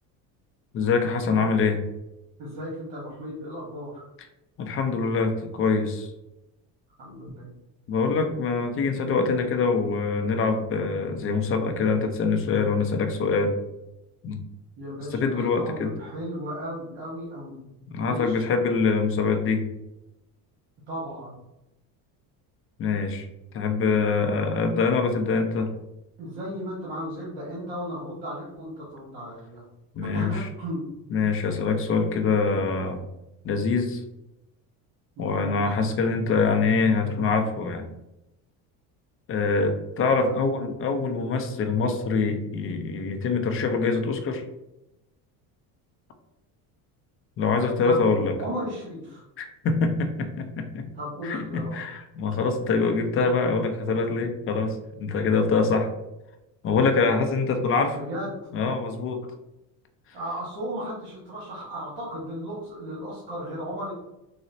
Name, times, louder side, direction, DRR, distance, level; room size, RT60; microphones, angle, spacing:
voice 1, 0.7-1.8 4.6-6.1 7.9-13.6 14.2-14.4 15.1-15.9 17.9-19.7 22.8-23.3 23.5-25.7 29.9-30.5 31.1-33.0 33.4-34.0 35.2-37.9 39.3-44.4 47.4-48.3 49.4-50.9 51.2-55.9 56.6-58.0 58.5-59.3, left 4 dB, 35° left, 5 dB, 0.4 m, -24 dB
voice 2, 2.4-4.1 7.0-7.5 14.8-17.6 18.0-18.3 20.9-21.3 26.2-29.6 30.0-30.9 35.2-35.9 40.2-40.6 47.8-49.2 50.9-51.8 57.9-58.4 60.1-63.9, equal, 65° right, -6 dB, 1.2 m, -35 dB
3.9 x 2.0 x 2.6 m, 0.91 s
cardioid pair, 115°, 39 cm